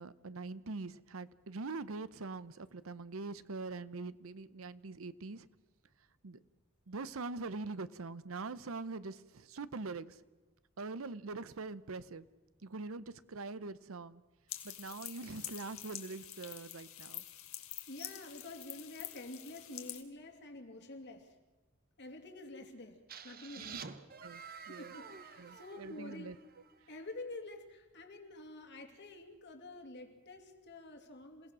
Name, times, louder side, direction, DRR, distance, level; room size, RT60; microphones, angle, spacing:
voice 1, 0.0-5.5 6.2-6.4 6.9-10.2 10.8-12.3 12.6-14.2 14.6-17.2 23.6-23.8 24.2-24.9 25.4-26.4, right 3 dB, 70° right, 16 dB, 0.8 m, -43 dB
sound 1, 14.5-20.0, left 13 dB, 75° left, 1.9 m, -47 dB
voice 2, 17.9-21.4 22.0-23.9 24.7-26.4 26.9-31.5, left 2 dB, 55° left, 4 dB, 2.7 m, -48 dB
sound 2, 23.1-26.8, right 6 dB, 45° right, 1.1 m, -50 dB
27.5 x 17.5 x 6.2 m, 1.2 s
head